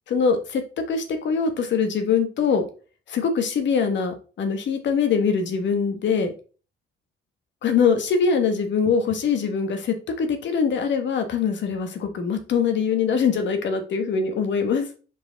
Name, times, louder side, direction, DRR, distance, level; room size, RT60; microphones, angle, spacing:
voice 1, 0.1-0.6 0.9-2.6 3.1-6.3 7.6-14.9, left 6 dB, 65° left, 6 dB, 1.3 m, -23 dB
5.1 x 4.8 x 4.0 m, 0.37 s
cardioid pair, 90°, 20 cm